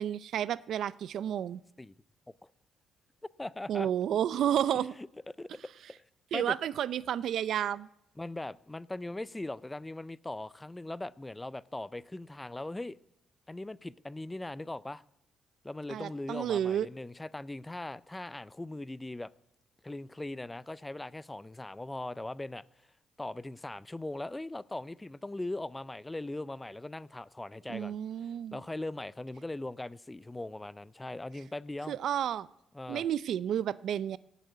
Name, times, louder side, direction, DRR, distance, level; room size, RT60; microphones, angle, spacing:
voice 1, 0.0-1.6 3.7-4.9 6.3-7.9 15.9-16.9 27.7-28.6 31.9-32.5 32.9-34.2, right 10 dB, 70° right, 0.5 m, -31 dB
voice 2, 3.4-3.9 5.0-5.1 5.4-5.5 6.3-6.6 8.2-13.0 13.5-15.0 15.6-19.3 19.8-22.6 23.2-28.0 28.5-32.0 32.7-33.1, left 2 dB, 15° left, 0.4 m, -40 dB
16.5 x 8.3 x 9.3 m
cardioid pair, 90°, 0 cm